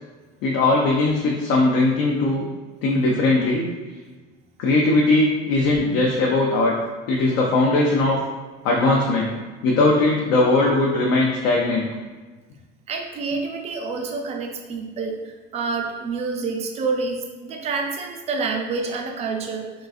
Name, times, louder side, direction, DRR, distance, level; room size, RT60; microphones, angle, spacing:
voice 1, 0.4-2.5 2.8-3.7 4.6-6.7 7.1-8.2 8.6-9.3 9.6-11.9, left 2 dB, 75° left, -2 dB, 0.5 m, -19 dB
voice 2, 12.9-15.2 15.5-19.7, right 4 dB, 35° right, 3 dB, 0.4 m, -28 dB
3.8 x 2.4 x 2.4 m, 1.3 s
cardioid pair, 150°, 20 cm